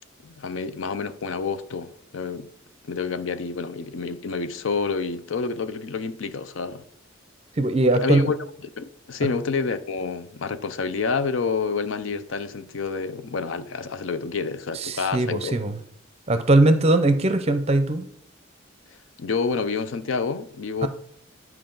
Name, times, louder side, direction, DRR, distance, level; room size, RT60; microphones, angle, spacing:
voice 1, 0.2-2.5 2.8-6.8 8.0-8.3 8.8-15.6 19.2-20.9, left 5 dB, 75° left, 0.5 m, -28 dB
voice 2, 7.6-8.3 14.7-15.8 16.3-18.1 20.8-20.9, right 2 dB, 30° right, 0.6 m, -20 dB
11.0 x 4.6 x 3.9 m
head